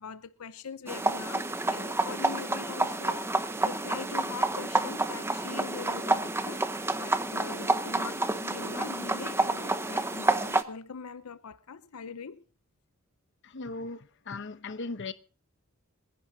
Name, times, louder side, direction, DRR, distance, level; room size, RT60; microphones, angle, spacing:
voice 1, 0.0-6.7 7.0-12.4, left 5 dB, 85° left, 0.7 m, -42 dB
sound 1, 0.9-10.6, right 2 dB, 10° right, 0.8 m, -29 dB
voice 2, 13.4-15.1, left 3 dB, 55° left, 1.0 m, -38 dB
26.5 x 10.5 x 2.8 m
head